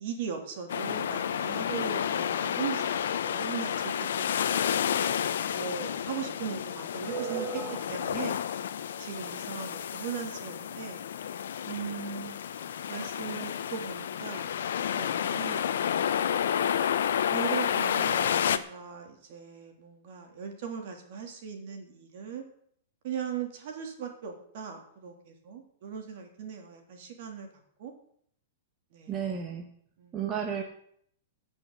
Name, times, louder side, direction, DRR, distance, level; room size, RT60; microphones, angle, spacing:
voice 1, 0.0-4.3 4.8-5.0 5.5-7.6 7.9-8.5 9.0-11.0 11.6-12.4 12.9-14.5 15.0-16.3 17.3-22.4 23.0-27.5 27.8-27.9 28.9-29.2 30.0-30.5, right 7 dB, 50° right, 4 dB, 3.4 m, -39 dB
sound 1, 0.7-18.6, left 9 dB, 80° left, 0.9 m, -30 dB
voice 2, 7.0-8.0 29.1-29.7 30.1-30.6, right 7 dB, 20° right, 2 dB, 1.4 m, -33 dB
15.5 x 6.5 x 8.2 m, 0.66 s
supercardioid pair, 165°, 0 cm